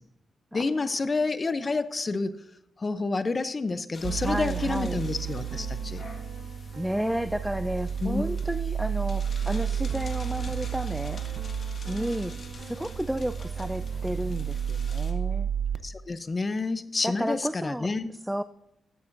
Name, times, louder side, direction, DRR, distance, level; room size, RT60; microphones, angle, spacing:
voice 1, 0.5-2.4 2.8-6.0 8.0-8.4 15.8-18.1, left 3 dB, 35° left, 13 dB, 0.6 m, -29 dB
sound 1, 3.9-15.1, left 3 dB, 55° left, 1.6 m, -47 dB
sound 2, 4.0-15.8, right 8 dB, 65° right, 0.6 m, -32 dB
voice 2, 4.2-5.0 6.8-11.2 11.9-15.5 17.0-17.9 18.2-18.4, equal, 5° right, 12 dB, 0.3 m, -32 dB
13.0 x 9.2 x 2.6 m, 0.86 s
cardioid pair, 100°, 0 cm